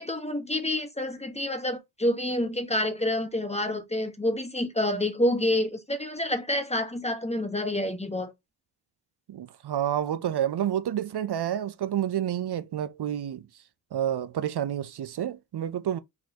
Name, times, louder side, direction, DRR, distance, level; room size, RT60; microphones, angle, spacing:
voice 1, 0.0-8.3, left 1 dB, 15° left, 1.3 m, -28 dB
voice 2, 9.3-13.5 13.9-16.0, right 10 dB, 70° right, 0.6 m, -29 dB
4.3 x 4.2 x 2.8 m
cardioid pair, 55°, 41 cm